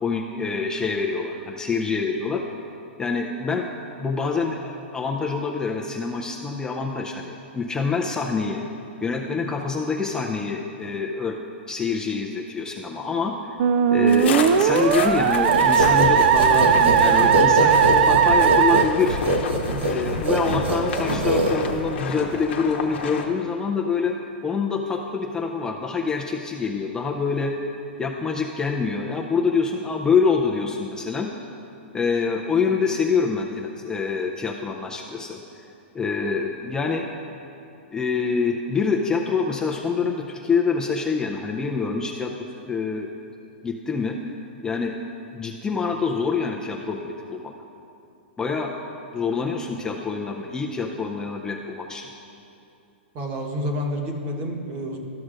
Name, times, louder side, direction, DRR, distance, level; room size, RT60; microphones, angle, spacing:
voice 1, 0.0-2.4 3.0-3.7 4.0-8.6 9.0-11.4 11.7-13.6 13.9-19.2 19.9-24.1 24.4-27.5 28.0-31.3 31.9-35.7 35.9-37.1 37.9-42.3 42.6-43.1 43.6-45.0 45.3-47.5 48.4-48.7 49.1-52.1, left 5 dB, 10° left, 0 dB, 0.4 m, -26 dB
Musical instrument, 13.6-18.8, right 8 dB, 60° right, 0.3 m, -18 dB
sound 1, 14.1-23.2, left 5 dB, 75° left, 0.8 m, -32 dB
sound 2, 15.5-22.0, right 1 dB, 80° right, 1.1 m, -23 dB
voice 2, 53.1-55.0, equal, 35° right, 1 dB, 1.2 m, -29 dB
13.0 x 6.1 x 2.5 m, 2.7 s
hypercardioid pair, 130°, 6 cm